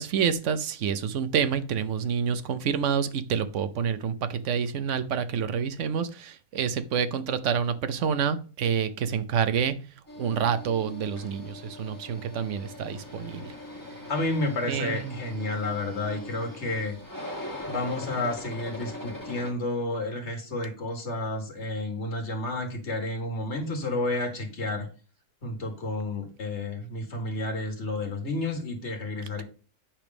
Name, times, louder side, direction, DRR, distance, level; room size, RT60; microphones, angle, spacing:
voice 1, 0.0-9.8 10.2-13.5 14.7-15.2 29.3-29.4, right 7 dB, 60° right, 0.9 m, -28 dB
sound 1, 10.1-19.5, left 1 dB, 15° left, 1.3 m, -41 dB
voice 2, 14.1-17.0 17.6-24.9 25.4-29.4, left 2 dB, 45° left, 2.0 m, -31 dB
8.7 x 3.4 x 6.0 m
omnidirectional pair, 1.7 m